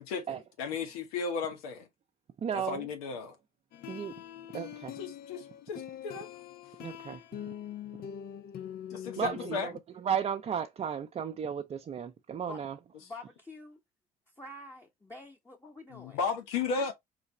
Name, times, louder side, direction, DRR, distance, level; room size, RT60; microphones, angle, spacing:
voice 1, 0.0-1.9 2.5-3.4 5.0-6.3 8.9-9.7 15.9-16.9, left 5 dB, 90° left, 1.1 m, -35 dB
voice 2, 2.4-2.9 3.9-4.1 4.5-4.9 6.8-7.2 9.2-12.8, right 8 dB, 35° right, 0.5 m, -34 dB
sound 1, 3.7-9.8, left 10 dB, 60° left, 0.7 m, -43 dB
voice 3, 13.0-13.8 14.4-16.2, left 2 dB, 15° left, 1.0 m, -47 dB
3.9 x 3.3 x 2.9 m
supercardioid pair, 75°, 18 cm